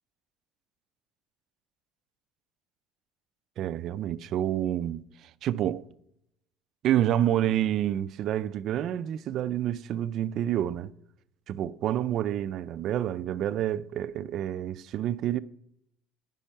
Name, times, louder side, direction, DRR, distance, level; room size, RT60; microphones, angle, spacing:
voice 1, 3.6-5.9 6.8-10.9 11.5-15.4, right 11 dB, 50° right, 0.4 m, -28 dB
10.5 x 5.4 x 5.5 m
cardioid pair, 130°, 0 cm